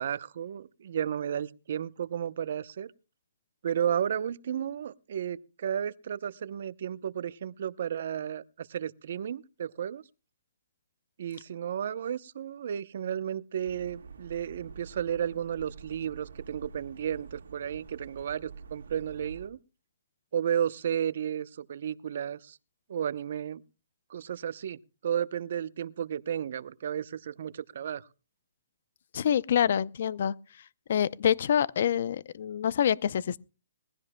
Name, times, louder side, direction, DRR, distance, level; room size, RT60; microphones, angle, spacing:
voice 1, 0.0-2.9 3.6-10.0 11.2-19.6 20.3-22.6 22.9-23.6 24.1-28.1, right 9 dB, 55° right, 0.7 m, -33 dB
sound 1, 13.6-19.5, right 5 dB, 85° right, 1.8 m, -47 dB
voice 2, 29.1-33.4, left 9 dB, 50° left, 0.6 m, -27 dB
21.5 x 16.0 x 2.2 m
hypercardioid pair, 165°, 0 cm